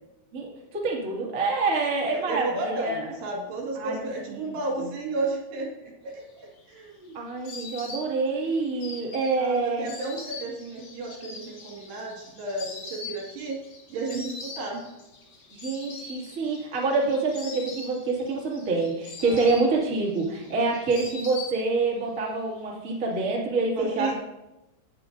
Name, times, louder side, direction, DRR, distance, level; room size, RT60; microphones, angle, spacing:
voice 1, 0.3-3.1 3.7-4.5 7.1-9.9 15.5-24.1, right 3 dB, 30° right, -4 dB, 1.4 m, -27 dB
voice 2, 2.1-7.2 9.0-13.6 13.9-14.8 19.2-19.5 23.7-24.1, right 2 dB, 65° right, -1 dB, 4.1 m, -33 dB
Insect, 6.3-22.0 22.3-23.1, left 4 dB, 50° left, 2.7 m, -43 dB
17.0 x 9.7 x 2.6 m, 0.97 s
omnidirectional pair, 5.4 m